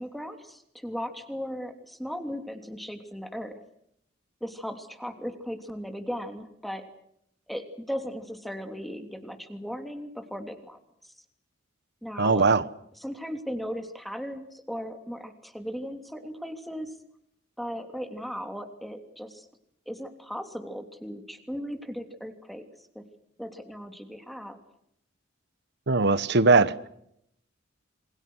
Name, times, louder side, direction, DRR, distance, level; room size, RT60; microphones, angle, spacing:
voice 1, 0.0-3.5 4.4-6.8 7.5-11.1 12.0-12.5 13.0-16.9 17.6-19.5 19.9-23.0 23.4-24.6, equal, ahead, 3.1 m, -37 dB
voice 2, 12.2-12.6 25.9-26.9, right 3 dB, 60° right, 1.1 m, -20 dB
28.0 x 26.0 x 6.4 m
head